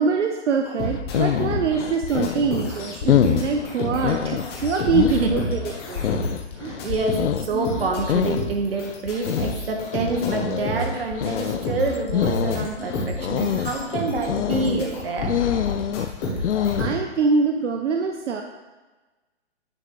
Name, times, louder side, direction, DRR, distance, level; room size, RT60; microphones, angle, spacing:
voice 1, 0.0-6.1 6.6-6.8 16.8-18.4, right 5 dB, 80° right, 4 dB, 0.7 m, -24 dB
sound 1, 0.6-16.9, left 1 dB, 20° left, 1.2 m, -31 dB
sound 2, 0.8-17.0, left 10 dB, 80° left, 0.5 m, -26 dB
voice 2, 6.8-15.3, right 3 dB, 55° right, 3 dB, 1.4 m, -27 dB
9.7 x 3.7 x 4.8 m, 1.2 s
hypercardioid pair, 160°, 35 cm